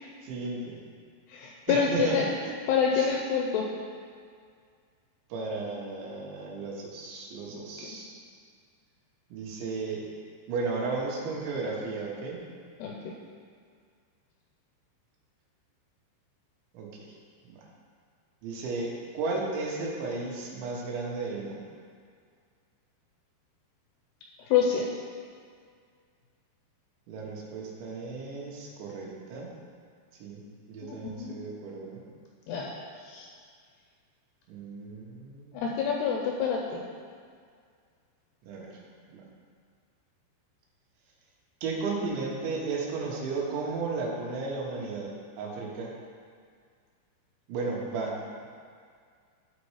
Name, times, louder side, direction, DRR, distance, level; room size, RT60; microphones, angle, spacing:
voice 1, 0.2-0.8 1.7-2.5 2.9-3.2 5.3-8.2 9.3-10.1 10.5-12.5 16.7-16.9 17.4-17.6 18.4-21.7 27.1-29.5 30.2-30.4 30.7-32.0 34.5-35.6 38.4-38.7 39.1-39.2 41.6-45.1 45.4-45.9 47.5-48.5, right 3 dB, 80° right, -3 dB, 3.5 m, -34 dB
voice 2, 1.3-2.2 2.7-3.7 7.5-8.0 12.8-13.1 24.5-24.9 30.8-31.4 32.5-32.7 33.0-33.3 35.5-36.8, left 6 dB, 80° left, 0 dB, 2.4 m, -27 dB
12.5 x 4.3 x 4.8 m, 2.1 s
omnidirectional pair, 5.3 m